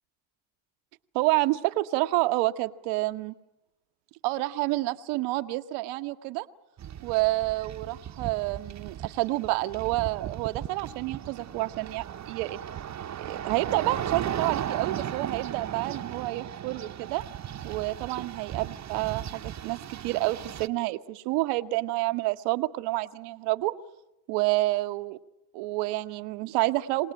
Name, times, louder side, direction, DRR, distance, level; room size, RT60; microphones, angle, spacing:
voice 1, 1.1-3.3 4.2-6.5 7.0-12.6 13.2-17.2 17.6-23.7 24.3-25.2 25.5-27.1, right 19 dB, 90° right, 10 dB, 1.0 m, -29 dB
sound 1, 6.8-20.7, right 10 dB, 40° right, 0.9 m, -36 dB
28.0 x 18.5 x 8.9 m, 0.94 s
supercardioid pair, 75°, 41 cm